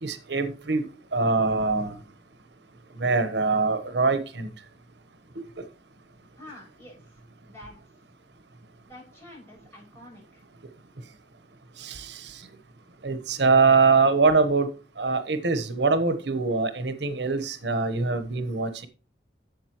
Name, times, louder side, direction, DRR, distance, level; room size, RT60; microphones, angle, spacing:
voice 1, 0.0-2.0 2.9-4.5 5.6-5.7 11.8-12.5 13.0-14.7 15.0-18.9, right 4 dB, 75° right, 1.1 m, -23 dB
voice 2, 6.3-7.7 8.9-10.4, left 1 dB, 15° left, 6.0 m, -48 dB
11.5 x 7.6 x 3.0 m
head